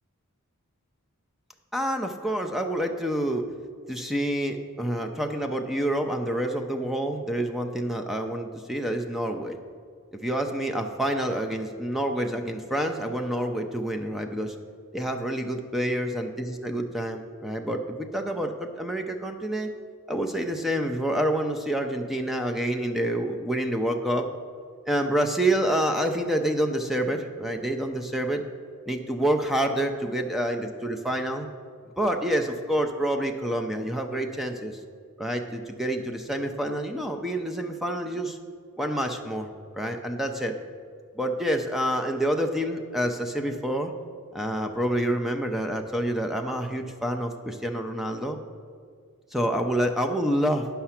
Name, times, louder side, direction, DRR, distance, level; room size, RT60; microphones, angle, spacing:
voice 1, 1.7-3.5 3.9-9.6 10.1-14.6 14.9-16.3 16.6-19.7 20.1-24.3 24.9-28.4 28.9-31.5 32.0-34.8 35.2-38.4 38.8-40.6 41.2-43.9 44.3-48.4 49.3-50.7, right 1 dB, ahead, 4 dB, 0.5 m, -27 dB
9.8 x 5.7 x 5.7 m, 2.1 s
head